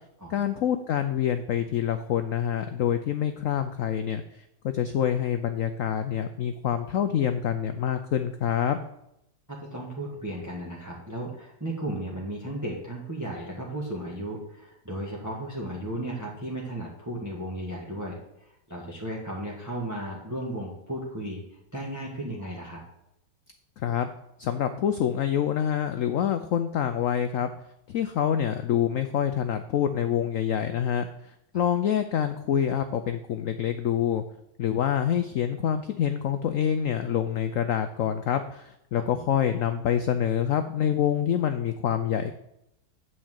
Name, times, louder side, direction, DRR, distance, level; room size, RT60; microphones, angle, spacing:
voice 1, 0.3-8.8 23.8-24.1 24.4-27.5 27.9-31.1 31.5-34.2 34.6-42.3, left 9 dB, 75° left, 9 dB, 0.7 m, -26 dB
voice 2, 9.7-21.4 21.7-22.8 39.1-39.2, right 1 dB, 10° right, -3 dB, 1.4 m, -35 dB
8.9 x 4.6 x 7.4 m, 0.81 s
omnidirectional pair, 2.0 m